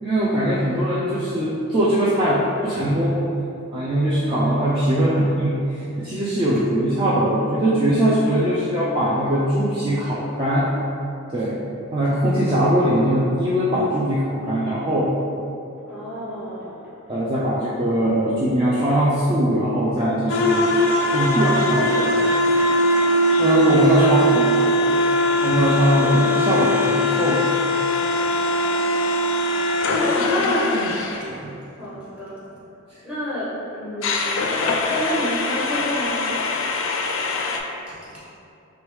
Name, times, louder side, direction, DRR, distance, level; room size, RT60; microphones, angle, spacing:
voice 1, 0.0-3.2 3.7-10.7 11.3-11.6 11.9-15.1 17.1-21.5 21.7-21.9 23.4-24.2 25.4-27.4 31.3-31.4 32.9-33.0, right 1 dB, 25° right, -9 dB, 0.4 m, -21 dB
voice 2, 15.9-16.9 21.2-22.4 24.0-25.1 30.1-30.9 31.7-32.4 33.0-34.3 34.9-36.2, equal, 5° right, -10 dB, 0.9 m, -30 dB
sound 1, 20.3-31.2 34.0-37.6, left 1 dB, 60° left, 0.4 m, -21 dB
3.4 x 3.0 x 3.1 m, 2.7 s
head